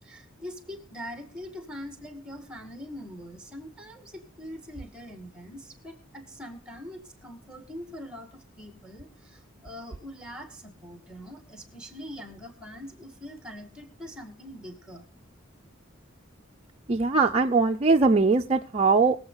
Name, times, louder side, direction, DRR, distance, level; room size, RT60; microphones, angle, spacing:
voice 1, 0.0-15.1, equal, 5° right, 6 dB, 2.1 m, -43 dB
voice 2, 16.9-19.2, right 4 dB, 30° right, 2 dB, 0.5 m, -21 dB
22.0 x 7.8 x 3.9 m, 0.39 s
head